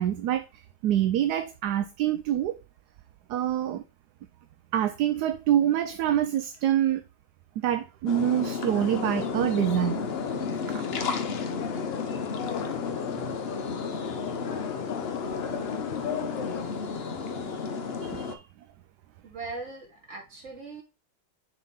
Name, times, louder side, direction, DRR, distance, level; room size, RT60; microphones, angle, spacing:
voice 1, 0.0-2.6 3.3-3.8 4.7-7.0 7.6-10.1 10.7-10.8 18.0-18.4, right 11 dB, 75° right, 1.1 m, -26 dB
sound 1, 8.1-18.3, left 5 dB, 50° left, 0.8 m, -32 dB
sound 2, 8.7-16.6, left 8 dB, 90° left, 1.5 m, -37 dB
voice 2, 19.2-20.8, right 3 dB, 40° right, 2.7 m, -39 dB
6.6 x 3.7 x 4.0 m
omnidirectional pair, 1.9 m